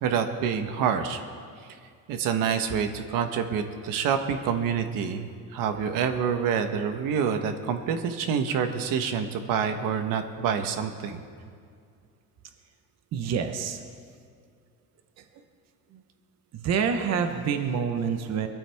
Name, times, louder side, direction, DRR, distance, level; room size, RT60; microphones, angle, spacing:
voice 1, 0.0-1.2 2.1-11.2, right 7 dB, 90° right, 7 dB, 1.2 m, -27 dB
voice 2, 13.1-13.8 15.9-16.0 16.5-18.5, right 7 dB, 55° right, 6 dB, 1.0 m, -27 dB
22.0 x 14.0 x 3.5 m, 2.2 s
cardioid pair, 170°, 32 cm